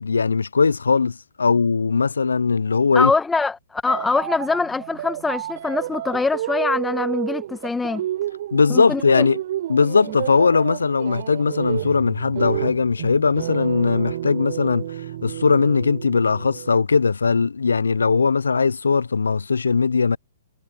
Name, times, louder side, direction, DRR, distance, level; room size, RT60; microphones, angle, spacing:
voice 1, 0.0-3.1 8.5-9.4 9.7-20.2, left 5 dB, 85° left, 0.3 m, -19 dB
voice 2, 2.9-8.0 8.7-9.2, left 4 dB, 10° left, 1.1 m, -23 dB
sound 1, 3.9-16.8, right 12 dB, 55° right, 3.5 m, -30 dB
hypercardioid pair, 125°, 0 cm